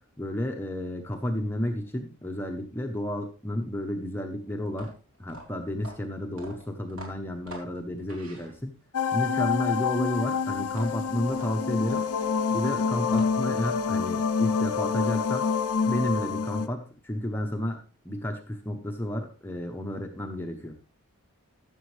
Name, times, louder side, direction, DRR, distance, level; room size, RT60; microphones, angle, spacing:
voice 1, 0.2-4.9 5.2-8.7 9.1-12.0 12.5-15.5 15.8-20.8, left 1 dB, 10° left, 3 dB, 0.8 m, -31 dB
sound 1, 4.7-9.0 10.6-13.6, equal, 65° right, 3.3 m, -45 dB
sound 2, 8.9-16.7, left 5 dB, 80° left, 0.7 m, -27 dB
15.0 x 6.9 x 3.2 m, 0.36 s
head